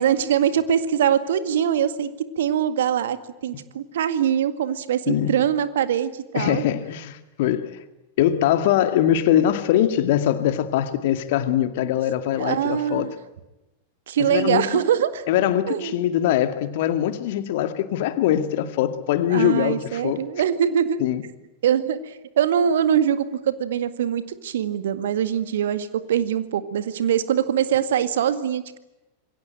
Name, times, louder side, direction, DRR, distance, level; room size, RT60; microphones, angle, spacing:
voice 1, 0.0-3.2 3.4-6.6 12.4-13.1 14.1-15.2 15.7-16.0 19.3-21.0 21.6-28.8, right 9 dB, 60° right, 12 dB, 1.9 m, -23 dB
voice 2, 5.1-5.4 6.3-7.8 8.2-13.1 14.2-14.6 15.3-20.2 21.0-21.2, left 11 dB, 50° left, 10 dB, 2.2 m, -22 dB
27.5 x 22.5 x 9.0 m, 0.97 s
figure-of-eight pair, 90°, 0 cm